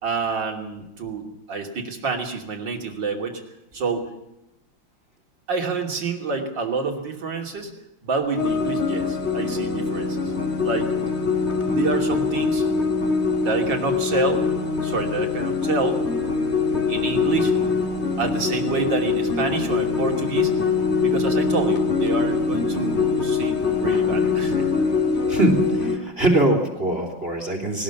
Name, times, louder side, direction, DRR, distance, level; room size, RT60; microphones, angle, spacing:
voice 1, 0.0-3.4 3.7-4.1 5.5-7.7 8.0-10.3 10.6-10.9 11.6-12.7 13.4-14.4 14.8-16.0 16.9-17.6 18.2-20.5 21.0-24.7, right 4 dB, 55° right, 2 dB, 3.5 m, -28 dB
sound 1, 8.4-26.0, left 4 dB, 30° left, 2.8 m, -23 dB
voice 2, 25.3-27.8, right 1 dB, 25° right, 3 dB, 3.4 m, -22 dB
20.0 x 19.5 x 7.2 m, 0.86 s
omnidirectional pair, 2.3 m